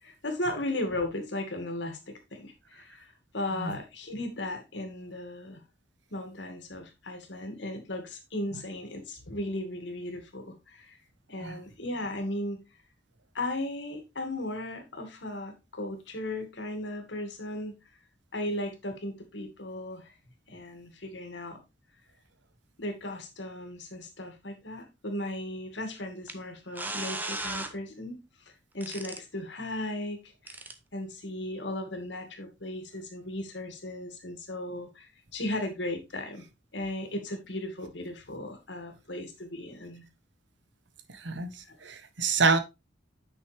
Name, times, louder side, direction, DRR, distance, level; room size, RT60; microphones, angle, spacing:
voice 1, 0.0-3.1 3.3-5.6 6.1-11.0 11.3-12.6 13.3-17.8 18.3-20.1 20.5-21.6 22.8-30.6 30.9-36.4 36.7-40.0 41.7-41.8, left 1 dB, 70° left, 2.2 m, -36 dB
sound 1, 26.3-26.4 26.7-27.7 28.8-29.2 30.5-30.7, right 2 dB, 10° right, 0.8 m, -36 dB
voice 2, 41.2-41.5 41.8-42.6, right 4 dB, 70° right, 1.2 m, -26 dB
9.1 x 6.1 x 3.4 m
head